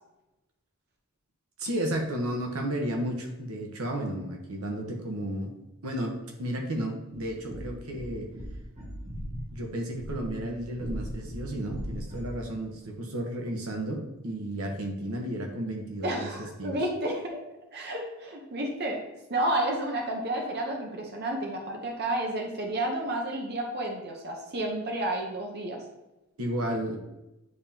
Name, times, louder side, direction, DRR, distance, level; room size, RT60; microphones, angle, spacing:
voice 1, 1.6-5.5 5.8-8.3 9.5-16.3 16.6-16.8 26.4-27.0, right 1 dB, 80° right, 2 dB, 1.1 m, -33 dB
sound 1, 7.1-12.5, equal, 30° right, 1.2 m, -39 dB
voice 2, 16.0-17.4 17.7-19.0 19.3-25.8, right 1 dB, 50° right, 1 dB, 0.9 m, -31 dB
9.3 x 3.6 x 2.8 m, 0.97 s
head